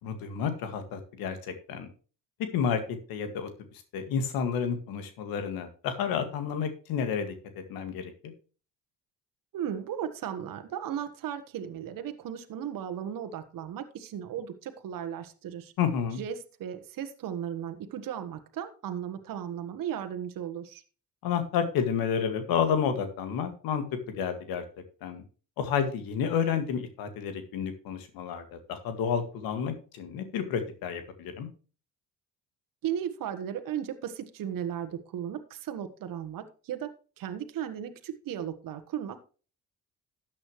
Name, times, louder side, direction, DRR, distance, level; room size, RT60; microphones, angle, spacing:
voice 1, 0.0-1.9 2.5-2.8 3.1-3.5 3.9-8.3 15.8-16.2 21.2-23.8 24.2-24.6 25.0-25.2 25.6-31.5, left 7 dB, 80° left, 8 dB, 2.0 m, -30 dB
voice 2, 9.5-15.7 16.2-20.8 32.8-36.9 37.2-39.2, right 9 dB, 70° right, 9 dB, 1.4 m, -36 dB
13.0 x 8.6 x 3.1 m, 0.36 s
supercardioid pair, 65°, 35 cm